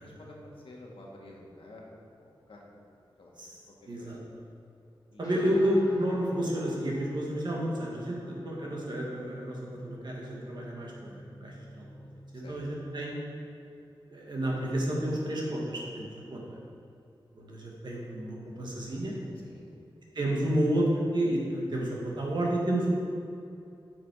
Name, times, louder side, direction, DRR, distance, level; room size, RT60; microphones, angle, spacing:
voice 1, 0.0-3.3 3.7-4.1 5.1-5.3 12.3-12.6 19.3-19.8, left 1 dB, 80° left, -2 dB, 1.6 m, -50 dB
voice 2, 3.9-4.2 5.2-12.1 12.3-13.1 14.1-16.6 17.3-19.1 20.1-22.9, right 1 dB, 55° right, -3 dB, 1.8 m, -30 dB
Guitar, 5.2-13.3, equal, 40° left, 1.5 m, -48 dB
9.4 x 6.2 x 4.7 m, 2.6 s
wide cardioid pair, 125°, 9 cm